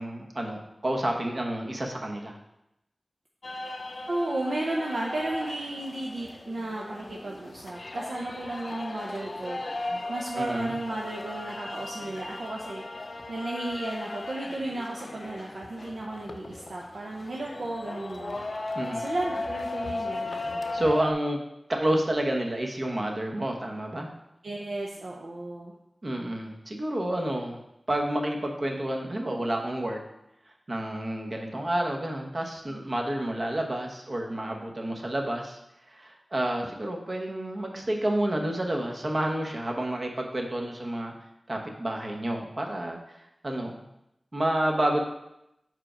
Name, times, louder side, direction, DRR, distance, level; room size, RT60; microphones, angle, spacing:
voice 1, 0.0-2.3 10.4-10.7 18.7-19.0 20.7-21.4 21.7-24.1 26.0-27.6 27.9-30.0 30.7-35.6 35.9-41.1 41.5-43.0 43.4-43.8 44.3-45.0, right 1 dB, 55° right, 1 dB, 1.0 m, -29 dB
sound 1, 3.4-21.1, left 2 dB, 65° left, 0.5 m, -37 dB
voice 2, 4.1-9.6 10.1-12.8 13.3-18.4 18.9-20.3 24.4-25.7 32.7-32.9, right 2 dB, 85° right, -3 dB, 0.6 m, -34 dB
4.8 x 4.5 x 5.0 m, 0.85 s
cardioid pair, 40°, 0 cm